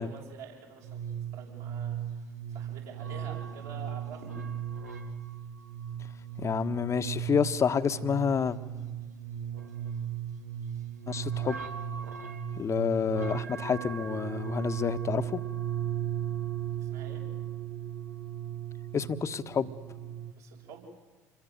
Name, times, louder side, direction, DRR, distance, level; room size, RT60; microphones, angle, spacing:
voice 1, 0.0-2.0 2.5-4.3 16.8-17.2 20.4-20.9, right 6 dB, 65° right, -2 dB, 7.7 m, -47 dB
sound 1, 0.8-20.3, right 9 dB, 85° right, 1.6 m, -36 dB
voice 2, 6.4-8.6 11.1-11.6 12.6-15.4 18.9-19.8, left 6 dB, 35° left, 11 dB, 1.4 m, -29 dB
28.0 x 22.0 x 8.0 m, 1.3 s
figure-of-eight pair, 55°, 9 cm